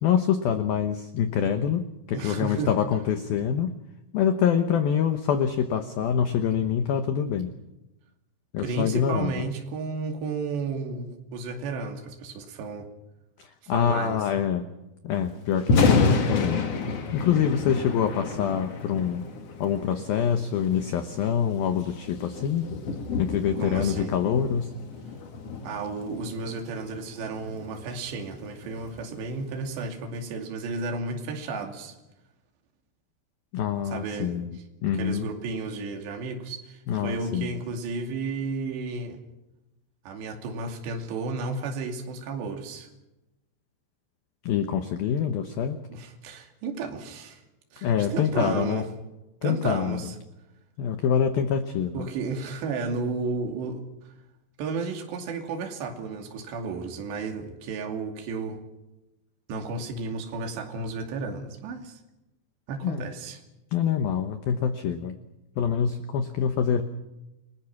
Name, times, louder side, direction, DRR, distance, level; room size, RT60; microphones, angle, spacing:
voice 1, 0.0-3.7 4.1-7.5 8.5-9.4 13.4-14.7 15.0-16.6 17.1-19.2 19.6-22.7 23.2-24.7 33.5-35.3 36.9-37.6 44.4-45.8 47.8-48.9 49.4-50.0 50.8-52.1 62.8-63.1 63.7-65.2 65.6-66.8, left 8 dB, 85° left, 8 dB, 2.1 m, -25 dB
voice 2, 2.1-2.7 8.6-12.9 13.6-14.2 23.6-24.1 25.6-32.0 33.9-34.3 34.9-39.2 40.1-42.9 45.9-47.4 47.7-48.8 49.4-50.1 51.9-54.1 54.6-58.6 59.5-62.0 62.7-63.4, right 4 dB, 60° right, 3 dB, 4.5 m, -33 dB
Thunder, 15.5-29.7, left 4 dB, 55° left, 1.8 m, -30 dB
29.5 x 20.5 x 6.0 m, 0.96 s
omnidirectional pair, 5.9 m